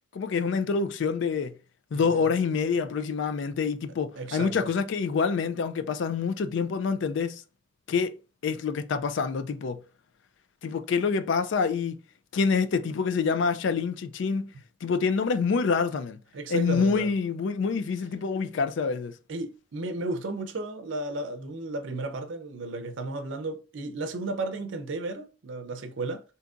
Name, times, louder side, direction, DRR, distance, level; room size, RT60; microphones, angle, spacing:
voice 1, 0.1-1.6 1.9-7.4 7.9-8.2 8.4-9.8 10.6-12.0 12.3-14.5 14.8-16.2 16.5-19.2, left 5 dB, 70° left, 0.4 m, -26 dB
voice 2, 1.9-2.3 4.2-4.7 16.3-17.1 19.3-26.2, right 2 dB, 75° right, 0.5 m, -34 dB
3.7 x 2.8 x 2.4 m
head